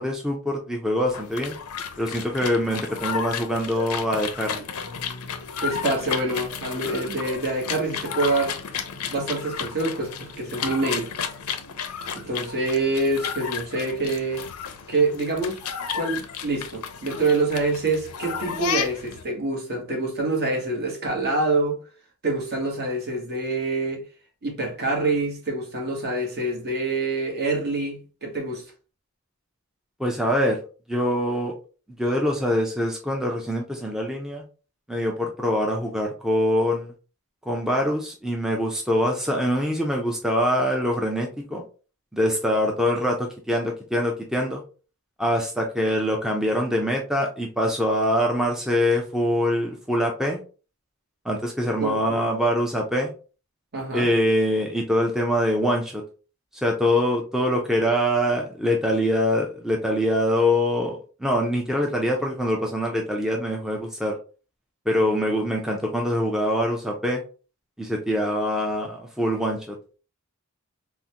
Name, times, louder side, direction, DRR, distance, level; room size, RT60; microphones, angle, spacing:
voice 1, 0.0-1.6 2.0-4.6 30.0-30.6 30.9-31.5 32.0-34.4 34.9-36.9 37.5-41.6 42.1-44.6 45.2-50.4 51.2-53.1 53.9-56.0 56.5-64.2 64.9-67.2 67.8-69.8, equal, ahead, 0.4 m, -24 dB
sound 1, 1.1-19.2, left 7 dB, 85° left, 0.5 m, -33 dB
voice 2, 5.6-8.6 9.1-11.1 12.1-14.5 14.9-15.6 15.9-21.8 22.2-24.0 24.4-28.6 51.8-52.2 53.7-54.1, right 2 dB, 45° right, 1.0 m, -26 dB
3.8 x 2.1 x 2.8 m
head